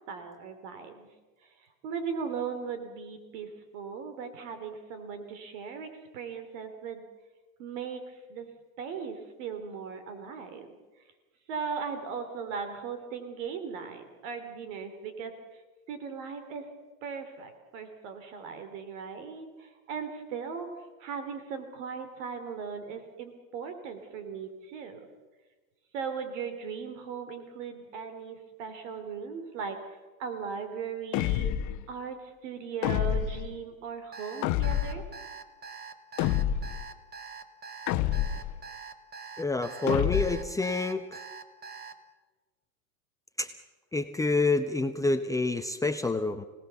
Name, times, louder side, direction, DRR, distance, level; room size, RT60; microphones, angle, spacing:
voice 1, 0.1-1.1 1.4-1.5 1.8-7.0 7.6-10.7 11.5-15.3 15.9-16.7 17.0-25.0 25.9-31.5 31.9-35.0, right 6 dB, 60° right, 9 dB, 3.3 m, -38 dB
sound 1, 31.1-31.8 32.8-33.5 34.4-35.1 36.2-36.8 37.9-38.6 39.9-40.5, left 12 dB, 45° left, 1.2 m, -28 dB
Alarm, 34.1-41.9, right 5 dB, 20° right, 1.9 m, -44 dB
voice 2, 39.4-41.2 43.4-43.5 43.9-46.5, left 3 dB, 10° left, 6 dB, 0.9 m, -28 dB
29.5 x 18.5 x 7.0 m, 1.3 s
hypercardioid pair, 110°, 42 cm